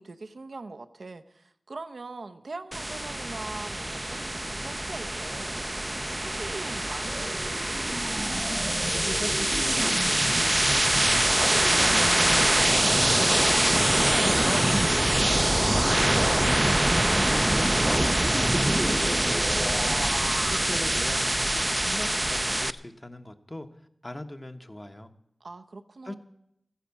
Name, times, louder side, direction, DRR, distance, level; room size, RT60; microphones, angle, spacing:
voice 1, 0.0-5.6 5.9-8.3 25.4-26.2, right 3 dB, 85° right, 0.7 m, -42 dB
sound 1, 2.7-22.7, right 1 dB, 25° right, 0.5 m, -24 dB
voice 2, 8.9-11.3 11.7-14.0 14.4-16.6 17.3-19.9 20.5-23.7 24.0-25.1 26.0-26.2, left 1 dB, 30° left, 1.1 m, -39 dB
14.0 x 10.0 x 7.1 m
wide cardioid pair, 45°, 0 cm